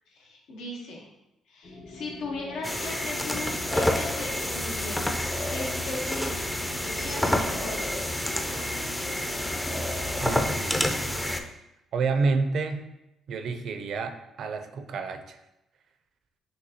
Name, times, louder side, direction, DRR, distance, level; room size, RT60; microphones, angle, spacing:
voice 1, 0.1-1.1 1.5-6.5 6.8-8.1, left 2 dB, 85° left, -1 dB, 1.0 m, -38 dB
sound 1, 1.6-10.4, left 1 dB, 65° left, 1.2 m, -44 dB
sound 2, 2.6-11.4, left 1 dB, 10° left, 0.4 m, -28 dB
voice 2, 10.2-11.2 11.9-12.9 13.3-15.4, right 4 dB, 65° right, 8 dB, 0.4 m, -29 dB
6.3 x 2.7 x 2.8 m, 0.90 s
cardioid pair, 85°, 0 cm